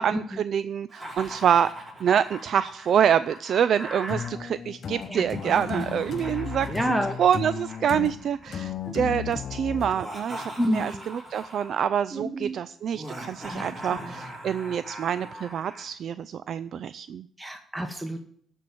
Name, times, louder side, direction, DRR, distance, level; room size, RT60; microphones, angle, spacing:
voice 1, 0.0-1.7 2.0-6.7 7.2-17.3, right 8 dB, 65° right, 15 dB, 0.3 m, -26 dB
Laughter, 0.9-4.3 5.3-8.6 9.8-11.8 12.9-15.9, right 1 dB, 25° right, 5.5 m, -41 dB
sound 1, 4.1-9.9, left 7 dB, 55° left, 0.7 m, -35 dB
voice 2, 5.1-5.8 6.7-7.2 8.8-9.0 10.6-11.0 12.1-12.5 13.5-14.1 17.4-18.2, equal, 10° right, 5 dB, 1.1 m, -30 dB
13.0 x 4.6 x 7.6 m, 0.64 s
cardioid pair, 90°, 0 cm